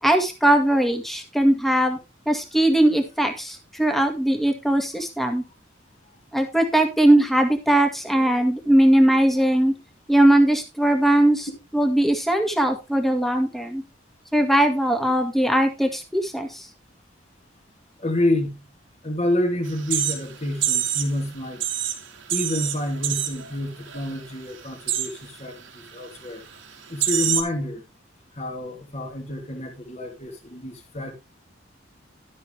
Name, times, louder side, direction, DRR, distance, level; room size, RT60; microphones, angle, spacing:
voice 1, 0.0-2.0 2.3-5.4 6.3-9.8 10.1-11.5 11.7-13.8 14.3-16.7, right 1 dB, ahead, 2.0 m, -20 dB
voice 2, 18.0-18.6 19.0-21.6 22.3-26.4 26.9-27.8 28.3-31.1, left 1 dB, 35° left, 2.9 m, -28 dB
sound 1, 19.7-21.2 21.5-23.5 23.9-24.2 24.5-25.2 25.9-26.0 26.6-26.7 27.0-27.4, right 11 dB, 80° right, 2.6 m, -26 dB
12.5 x 8.5 x 3.4 m
head